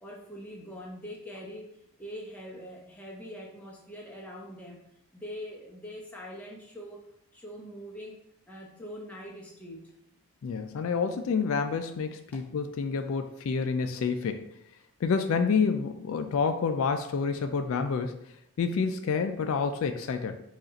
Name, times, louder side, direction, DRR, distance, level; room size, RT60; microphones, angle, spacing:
voice 1, 0.0-1.7 2.0-4.8 5.1-7.0 7.3-8.2 8.5-9.9 12.3-12.5, equal, 5° left, -3 dB, 0.7 m, -43 dB
voice 2, 10.4-14.5 15.0-18.2 18.6-20.4, left 5 dB, 65° left, 8 dB, 0.3 m, -28 dB
5.2 x 2.4 x 4.0 m, 0.77 s
head